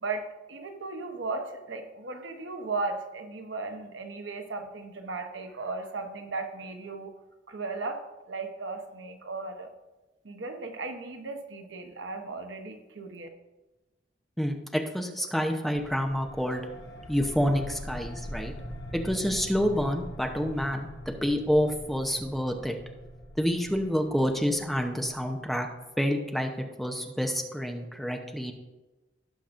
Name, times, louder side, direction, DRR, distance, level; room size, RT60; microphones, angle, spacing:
voice 1, 0.0-7.1 7.5-8.0 8.3-9.7 10.2-13.3, right 3 dB, 90° right, 5 dB, 1.0 m, -36 dB
voice 2, 14.4-16.6 17.1-18.5 18.9-20.9 21.2-22.8 23.4-25.7 26.0-26.5 26.8-28.5, equal, ahead, 2 dB, 0.7 m, -28 dB
sound 1, 15.7-25.9, equal, 70° left, 1.0 m, -43 dB
17.0 x 5.9 x 2.6 m, 1.1 s
head